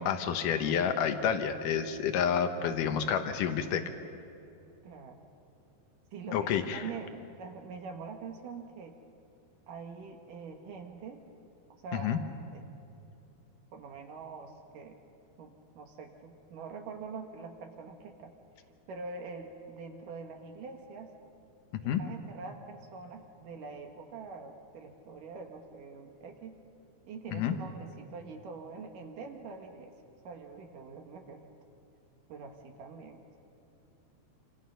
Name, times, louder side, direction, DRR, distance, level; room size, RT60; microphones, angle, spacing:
voice 1, 0.0-3.8 6.3-6.9 11.9-12.2 21.8-22.0 27.3-27.6, left 8 dB, 70° left, 7 dB, 2.1 m, -29 dB
voice 2, 4.8-5.3 6.1-9.0 9.7-11.2 11.8-12.6 13.7-15.0 15.4-18.3 18.9-21.1 21.8-26.6 27.0-29.9 30.2-31.5 32.3-33.4, right 4 dB, 60° right, 4 dB, 2.6 m, -44 dB
27.0 x 26.5 x 5.6 m, 2.8 s
omnidirectional pair, 4.9 m